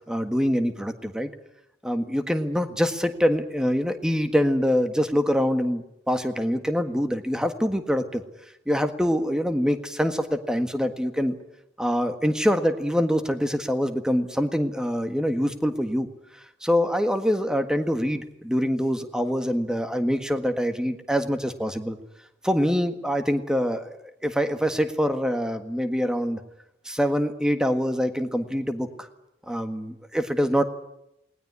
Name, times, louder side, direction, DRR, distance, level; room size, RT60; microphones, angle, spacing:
voice 1, 0.1-1.3 1.8-8.2 8.7-11.4 11.8-16.1 16.6-22.0 22.4-24.0 24.2-26.4 26.8-29.1 29.5-30.6, equal, 5° right, 8 dB, 1.6 m, -25 dB
20.0 x 19.5 x 9.7 m, 0.82 s
head